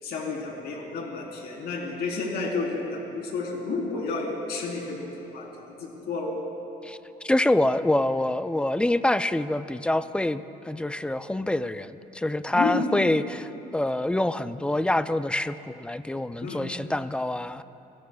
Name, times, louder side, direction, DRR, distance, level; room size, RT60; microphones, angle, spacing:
voice 1, 0.0-6.3 12.5-12.9 16.4-16.6, left 4 dB, 65° left, -2 dB, 3.9 m, -31 dB
voice 2, 7.2-17.6, left 1 dB, 5° left, 12 dB, 0.4 m, -26 dB
26.5 x 16.5 x 2.3 m, 2.9 s
cardioid pair, 110°, 17 cm